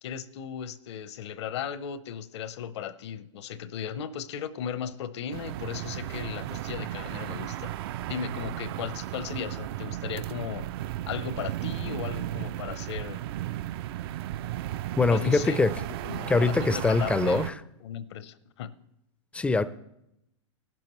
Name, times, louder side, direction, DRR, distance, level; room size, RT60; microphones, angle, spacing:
voice 1, 0.0-7.7 8.1-10.7 11.1-13.2 15.1-18.7, left 8 dB, 65° left, 0.8 m, -36 dB
sound 1, 5.3-17.5, right 13 dB, 55° right, 0.4 m, -35 dB
voice 2, 15.0-15.7 16.3-17.5 19.3-19.6, left 3 dB, 10° left, 0.4 m, -23 dB
19.0 x 12.0 x 3.1 m
hypercardioid pair, 125°, 16 cm